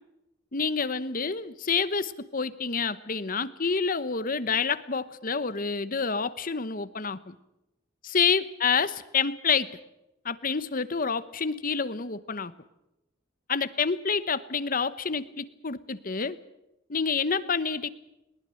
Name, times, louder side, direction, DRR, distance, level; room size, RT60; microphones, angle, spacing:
voice 1, 0.5-7.3 8.0-9.7 10.2-12.5 13.5-16.4 16.9-17.9, left 5 dB, 45° left, 14 dB, 1.0 m, -28 dB
21.5 x 19.5 x 7.7 m, 0.90 s
head